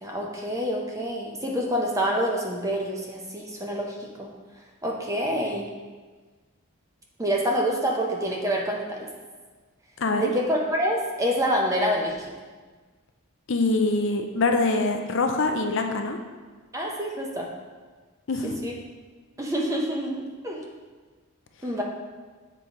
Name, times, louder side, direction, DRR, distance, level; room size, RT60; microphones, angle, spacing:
voice 1, 0.0-4.3 4.8-5.7 7.2-9.1 10.1-12.3 16.7-17.5 18.4-18.7 19.4-20.2 20.4-20.6 21.6-21.8, equal, 15° right, -1 dB, 0.7 m, -27 dB
voice 2, 10.0-10.3 13.5-16.2 18.3-18.5, left 3 dB, 55° left, 4 dB, 0.5 m, -24 dB
7.1 x 3.9 x 4.7 m, 1.4 s
head